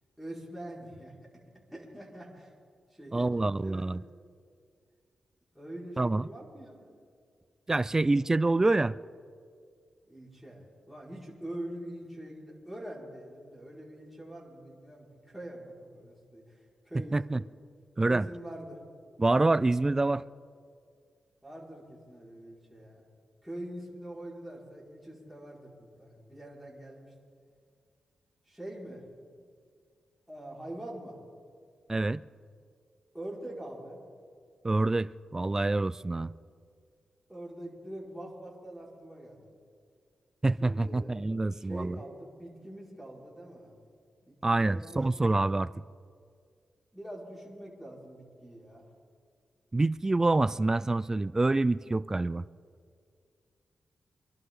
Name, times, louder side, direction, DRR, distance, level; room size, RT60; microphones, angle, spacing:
voice 1, 0.2-1.1 1.7-2.5 2.9-3.3 3.6-3.9 5.5-6.9 10.1-16.6 16.9-17.2 18.1-18.8 21.4-23.0 23.4-27.1 28.5-29.0 30.3-31.2 33.1-34.0 37.3-39.4 40.6-41.1 41.5-43.7 44.2-45.0 46.9-48.8, right 1 dB, ahead, 5.1 m, -44 dB
voice 2, 3.1-4.0 6.0-6.3 7.7-8.9 17.1-17.4 18.0-18.3 19.2-20.2 31.9-32.2 34.6-36.3 40.4-42.0 44.4-45.7 49.7-52.4, right 2 dB, 25° right, 0.4 m, -26 dB
25.5 x 11.5 x 3.8 m
cardioid pair, 55°, 2 cm